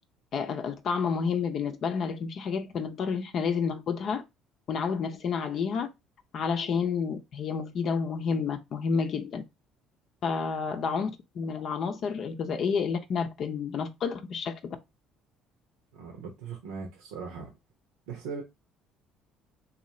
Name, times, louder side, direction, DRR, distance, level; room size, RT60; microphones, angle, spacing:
voice 1, 0.3-4.2 4.7-5.9 6.3-9.4 10.2-14.8, left 5 dB, 55° left, 0.6 m, -30 dB
voice 2, 15.9-17.5 18.1-18.4, right 5 dB, 85° right, 0.8 m, -39 dB
2.7 x 2.4 x 4.1 m
supercardioid pair, 75°, 0 cm